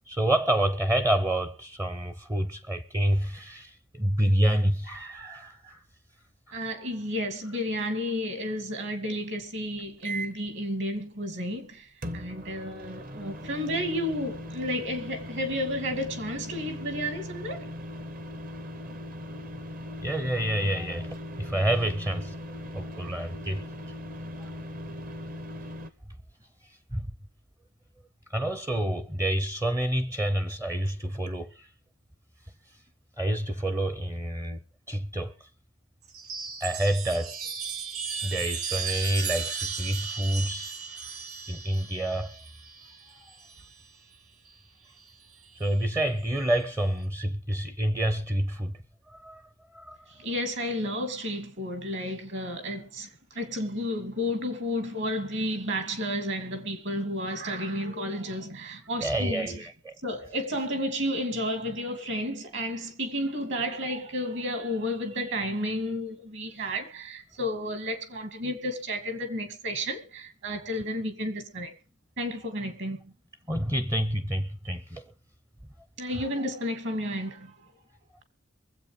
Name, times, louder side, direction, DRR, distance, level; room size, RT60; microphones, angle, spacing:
voice 1, 0.1-5.8 20.0-21.1 21.4-22.3 22.7-23.6 24.4-24.5 26.9-27.1 28.3-31.7 33.2-34.6 34.9-35.3 36.6-37.4 38.2-40.7 41.5-42.4 45.5-48.8 49.1-49.5 49.7-50.0 59.0-60.0 73.5-75.1, right 1 dB, 15° right, 0.6 m, -28 dB
voice 2, 6.5-17.6 50.1-59.6 60.0-71.7 72.2-73.1 76.0-77.5, equal, 55° right, 2.6 m, -32 dB
sound 1, 10.0-10.5 12.0-25.9, equal, 40° right, 0.9 m, -39 dB
Chime, 36.0-43.9 45.1-45.7, right 6 dB, 90° right, 1.9 m, -36 dB
23.0 x 8.1 x 5.1 m
head